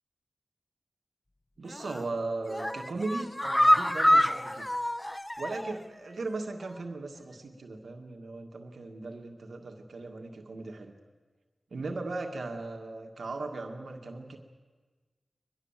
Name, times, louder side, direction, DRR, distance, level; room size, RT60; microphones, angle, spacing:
voice 1, 1.6-4.7 5.4-10.9 11.7-14.4, right 3 dB, 90° right, 3 dB, 1.9 m, -37 dB
sound 1, 1.7-2.1 2.5-5.9 6.2-6.3 6.6-6.7, equal, 15° left, 0.9 m, -26 dB
23.5 x 21.0 x 7.4 m, 1.4 s
cardioid pair, 50°, 0 cm